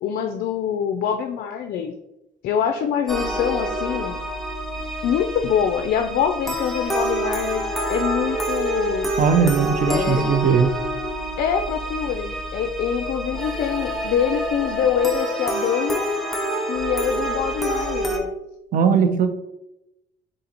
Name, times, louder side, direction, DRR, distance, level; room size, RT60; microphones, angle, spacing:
voice 1, 0.0-1.9 2.4-4.2 5.0-7.6 7.9-9.1 9.9-10.2 11.4-16.1 16.6-18.3, left 8 dB, 60° left, 6 dB, 0.4 m, -24 dB
sound 1, 3.1-18.2, right 1 dB, ahead, 0.6 m, -27 dB
voice 2, 9.2-10.7 18.7-19.3, right 6 dB, 50° right, 8 dB, 0.5 m, -18 dB
3.9 x 3.7 x 2.8 m, 0.89 s
cardioid pair, 110°, 17 cm